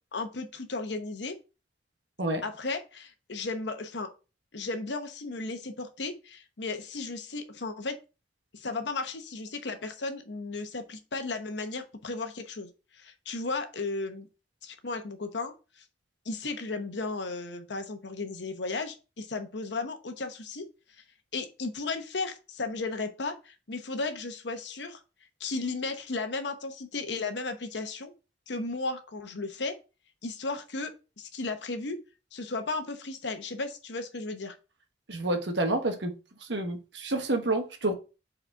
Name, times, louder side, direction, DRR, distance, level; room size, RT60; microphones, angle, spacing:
voice 1, 0.1-1.4 2.4-4.1 4.5-7.9 8.5-14.3 14.6-15.8 16.2-20.7 21.3-25.0 25.4-28.1 28.5-29.8 30.2-30.9 31.2-32.0 32.3-34.6, left 3 dB, 75° left, 7 dB, 1.0 m, -35 dB
voice 2, 35.1-36.1 36.5-37.9, right 2 dB, 75° right, 5 dB, 1.2 m, -28 dB
4.9 x 4.2 x 4.5 m, 0.31 s
head